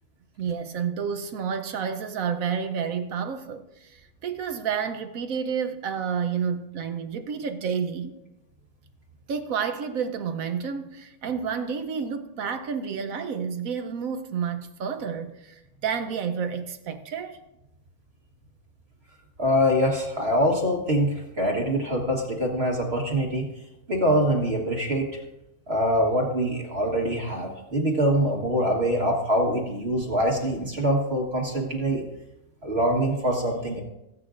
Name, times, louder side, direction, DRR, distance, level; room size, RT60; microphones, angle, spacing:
voice 1, 0.4-8.2 9.3-17.4, right 6 dB, 70° right, 1.1 m, -30 dB
voice 2, 19.4-23.5 23.9-25.1 25.7-32.0 32.6-33.8, equal, 45° right, 1.7 m, -24 dB
19.0 x 8.6 x 2.5 m
omnidirectional pair, 1.6 m